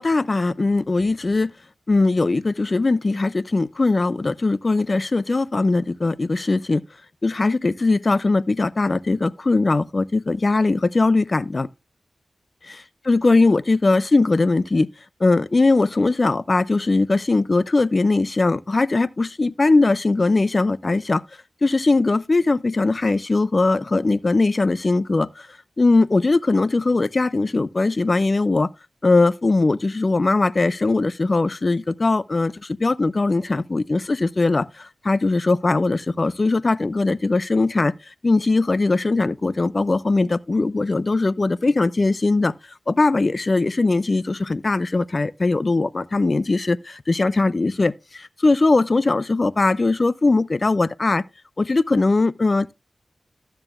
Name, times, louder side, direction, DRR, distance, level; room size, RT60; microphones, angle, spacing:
voice 1, 0.0-1.5 1.9-6.8 7.2-11.7 12.6-14.9 15.2-21.2 21.6-25.5 25.8-28.7 29.0-42.5 42.9-51.2 51.6-52.7, left 3 dB, 45° left, 0.4 m, -20 dB
12.5 x 8.9 x 2.4 m
cardioid pair, 50°, 0 cm